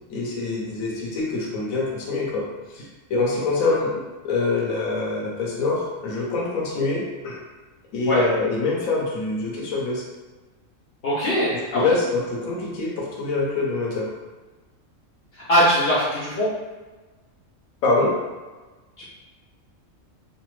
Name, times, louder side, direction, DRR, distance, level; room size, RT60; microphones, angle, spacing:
voice 1, 0.1-2.5 2.7-2.8 3.1-7.4 7.9-10.0 11.7-14.1 17.8-18.1, left 3 dB, 85° left, -3 dB, 1.1 m, -25 dB
voice 2, 11.0-12.0 15.3-16.5 19.0-19.1, equal, 55° left, -7 dB, 0.8 m, -21 dB
3.2 x 2.1 x 3.0 m, 1.2 s
omnidirectional pair, 1.4 m